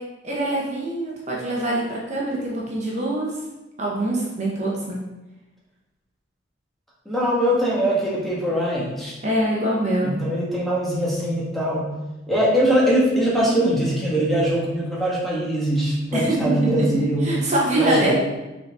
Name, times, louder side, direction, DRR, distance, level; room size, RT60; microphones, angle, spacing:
voice 1, 0.0-3.4 3.8-5.0 9.2-10.1 16.1-16.4 17.2-18.1, right 1 dB, 35° right, -4 dB, 1.0 m, -24 dB
voice 2, 7.0-9.2 10.0-11.9 12.3-17.4 17.7-18.1, equal, ahead, -6 dB, 1.5 m, -22 dB
6.6 x 4.1 x 3.6 m, 1.1 s
head